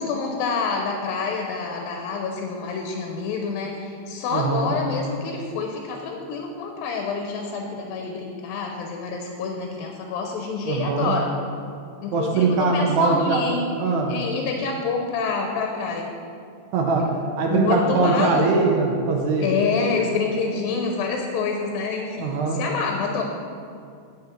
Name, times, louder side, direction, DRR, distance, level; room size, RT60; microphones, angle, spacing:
voice 1, 0.0-11.3 12.0-13.7 14.1-16.1 17.0-17.1 17.5-18.5 19.4-23.2, left 4 dB, 90° left, 2 dB, 2.6 m, -27 dB
voice 2, 4.3-4.8 10.7-11.2 12.1-13.4 13.8-14.1 16.7-19.5 19.8-19.9 22.2-22.6, right 4 dB, 70° right, 1 dB, 1.9 m, -22 dB
10.5 x 7.7 x 4.4 m, 2.4 s
omnidirectional pair, 4.0 m